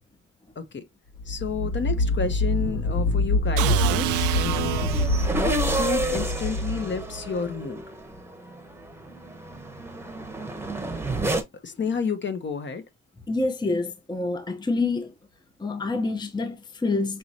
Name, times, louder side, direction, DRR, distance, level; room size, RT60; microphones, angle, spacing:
sound 1, 1.1-7.6, left 2 dB, 70° left, 2.1 m, -26 dB
voice 1, 1.2-7.8 11.6-12.8, left 5 dB, 40° left, 1.0 m, -31 dB
sound 2, 3.6-5.5, right 14 dB, 85° right, 0.5 m, -27 dB
sound 3, 4.8-11.4, right 2 dB, 10° right, 1.0 m, -30 dB
voice 2, 13.3-15.1 15.6-17.2, left 3 dB, 15° left, 0.7 m, -27 dB
5.9 x 3.1 x 2.6 m
cardioid pair, 90°, 30 cm